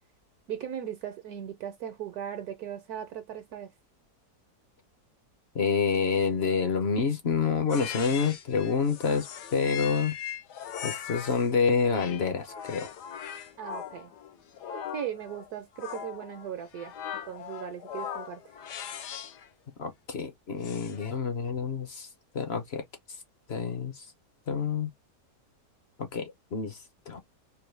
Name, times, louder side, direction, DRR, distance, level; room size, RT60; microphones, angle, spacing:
voice 1, 0.5-3.7 13.6-14.1 14.9-16.9 17.2-18.4, right 9 dB, 70° right, 1.2 m, -38 dB
voice 2, 5.5-9.3 9.5-10.1 10.8-12.9 19.8-22.1 22.3-22.8 23.5-24.0 24.5-24.9 26.0-26.8 27.1-27.2, left 5 dB, 50° left, 0.8 m, -28 dB
sound 1, 7.7-11.5 11.9-19.5 20.6-21.2, left 9 dB, 75° left, 1.3 m, -40 dB
4.6 x 2.3 x 3.2 m
omnidirectional pair, 1.8 m